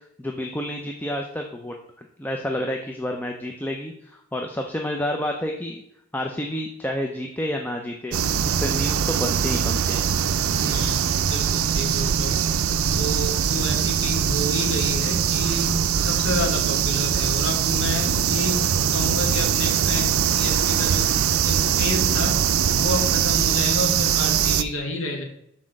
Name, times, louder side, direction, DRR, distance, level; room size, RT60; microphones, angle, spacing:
voice 1, 0.2-5.8 6.1-10.1, left 1 dB, 10° left, 2 dB, 0.4 m, -30 dB
sound 1, 8.1-24.6, right 8 dB, 80° right, 0.4 m, -22 dB
voice 2, 10.6-12.3 12.8-21.1 21.4-22.4 22.7-25.2, left 1 dB, 70° left, 1 dB, 1.4 m, -30 dB
6.0 x 4.2 x 6.3 m, 0.74 s
head